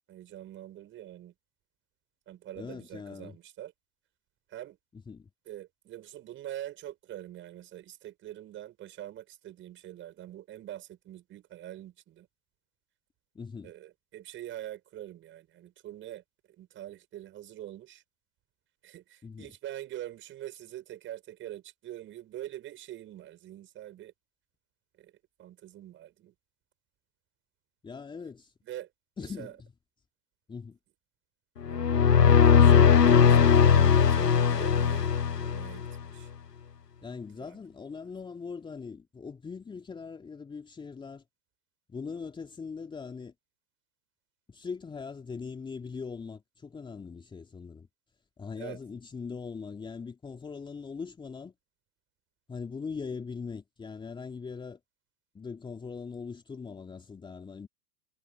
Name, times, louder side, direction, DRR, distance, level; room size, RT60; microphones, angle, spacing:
voice 1, 0.1-1.3 2.3-3.7 4.5-4.8 5.5-12.3 13.6-16.2 16.6-18.0 18.8-24.1 25.0-25.1 25.4-26.3 28.6-28.9 29.2-29.5 31.7-31.9 32.2-35.1 35.4-36.3 37.4-37.6 48.6-48.8, right 13 dB, 25° right, 6.2 m, -44 dB
voice 2, 2.5-3.4 4.9-5.3 13.3-13.7 19.2-19.5 27.8-28.5 29.2-29.5 30.5-30.8 37.0-41.2 41.9-43.3 44.5-47.9 48.4-51.5 52.5-54.8 55.3-57.7, left 5 dB, 10° left, 3.0 m, -41 dB
sound 1, 31.6-36.0, left 7 dB, 85° left, 0.8 m, -20 dB
figure-of-eight pair, 105°, 47 cm